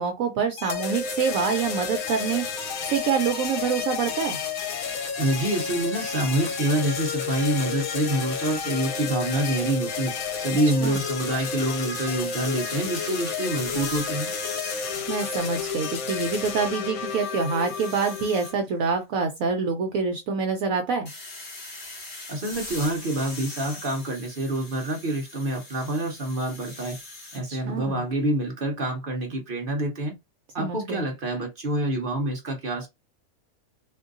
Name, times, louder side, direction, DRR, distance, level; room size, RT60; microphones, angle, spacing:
voice 1, 0.0-4.4 10.8-11.0 15.1-21.1 27.5-28.0 30.6-31.1, right 5 dB, 70° right, 0.9 m, -26 dB
sound 1, 0.6-18.5, left 6 dB, 70° left, 1.2 m, -31 dB
voice 2, 5.2-14.3 22.3-27.0 27.3-30.1 30.5-32.9, right 1 dB, 50° right, 0.7 m, -27 dB
sound 2, 12.2-16.5 16.9-18.5 21.1-27.4, left 2 dB, 50° left, 2.0 m, -41 dB
3.6 x 2.6 x 2.5 m
omnidirectional pair, 1.6 m